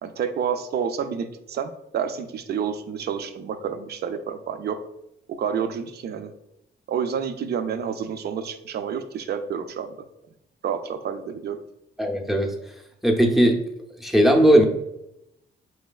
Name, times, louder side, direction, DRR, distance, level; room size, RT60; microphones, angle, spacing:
voice 1, 0.0-4.8 5.3-6.3 6.9-9.9 10.6-11.6, right 7 dB, 55° right, 9 dB, 0.4 m, -29 dB
voice 2, 12.0-12.6 13.0-13.6 14.0-14.7, equal, ahead, 1 dB, 0.6 m, -18 dB
4.5 x 3.2 x 2.3 m, 0.83 s
cardioid pair, 90°, 20 cm